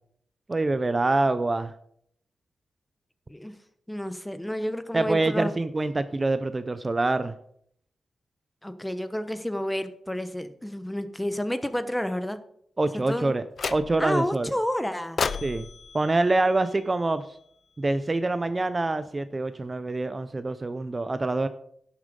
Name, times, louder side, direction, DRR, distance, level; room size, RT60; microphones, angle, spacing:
voice 1, 0.5-1.7 4.9-7.3 12.8-13.4 13.7-14.5 15.4-15.7 15.9-17.2 17.8-21.5, right 2 dB, 30° right, 12 dB, 0.5 m, -25 dB
voice 2, 3.9-5.5 8.6-12.4 13.1-13.3 14.0-15.2, equal, 10° left, 10 dB, 1.0 m, -30 dB
sound 1, 13.6-14.2 15.2-17.4, left 5 dB, 60° left, 0.5 m, -34 dB
11.5 x 7.2 x 5.3 m, 0.68 s
cardioid pair, 90°, 0 cm